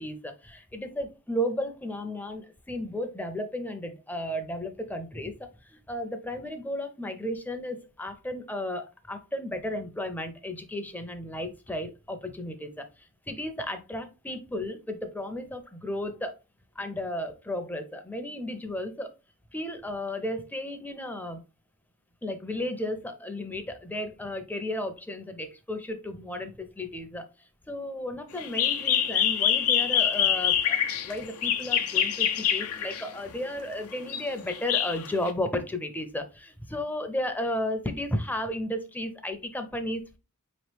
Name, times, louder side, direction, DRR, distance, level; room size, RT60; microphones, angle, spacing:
voice 1, 0.0-16.4 16.8-19.1 19.5-21.4 22.2-27.2 27.7-30.8 31.0-40.2, left 1 dB, 10° left, 7 dB, 0.5 m, -34 dB
sound 1, 28.4-33.2 33.9-35.3, left 9 dB, 80° left, 0.6 m, -25 dB
4.8 x 3.0 x 3.2 m, 0.29 s
head